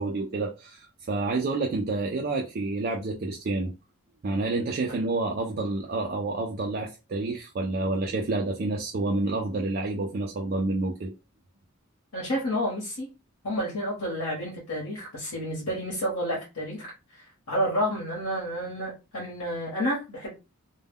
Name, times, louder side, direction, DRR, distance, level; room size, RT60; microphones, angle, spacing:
voice 1, 0.0-3.7 4.2-11.1, right 2 dB, 45° right, 0.3 m, -29 dB
voice 2, 12.1-13.1 13.4-16.8 17.1-20.3, equal, 80° left, 1.0 m, -30 dB
2.1 x 2.1 x 3.4 m
head